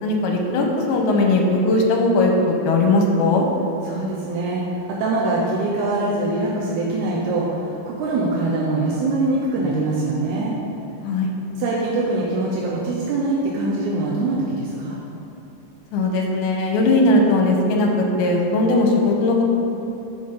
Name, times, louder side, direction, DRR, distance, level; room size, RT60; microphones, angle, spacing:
voice 1, 0.0-3.4 11.0-11.3 15.9-19.4, left 2 dB, 75° left, 1 dB, 2.0 m, -19 dB
voice 2, 3.8-10.6 11.6-15.0, right 2 dB, 75° right, -5 dB, 2.0 m, -23 dB
5.7 x 5.1 x 5.6 m, 3.0 s
omnidirectional pair, 3.9 m